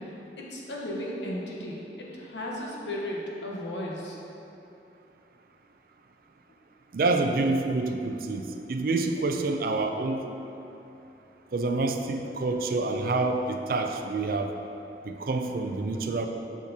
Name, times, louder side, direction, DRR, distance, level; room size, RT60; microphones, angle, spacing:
voice 1, 0.4-4.2, left 1 dB, 85° left, -3 dB, 1.1 m, -35 dB
voice 2, 6.9-10.3 11.5-14.5 15.0-16.3, right 3 dB, 55° right, 5 dB, 0.4 m, -27 dB
6.8 x 6.3 x 2.8 m, 2.9 s
head